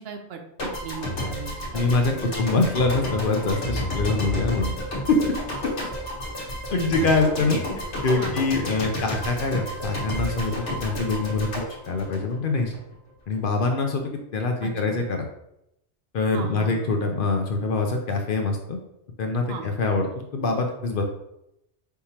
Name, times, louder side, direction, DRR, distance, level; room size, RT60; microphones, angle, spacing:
voice 1, 0.0-2.1 6.5-7.1 8.2-8.3 14.6-15.0 16.3-16.9 19.5-19.7, right 5 dB, 65° right, 4 dB, 0.8 m, -37 dB
sound 1, 0.6-12.8, left 1 dB, 80° left, 1.4 m, -31 dB
voice 2, 1.7-4.8 5.1-5.2 6.4-7.6 8.0-11.5 11.9-12.7 13.3-15.3 16.1-18.8 19.2-21.0, left 3 dB, 60° left, 3 dB, 0.7 m, -24 dB
4.6 x 3.6 x 2.8 m, 0.81 s
omnidirectional pair, 1.2 m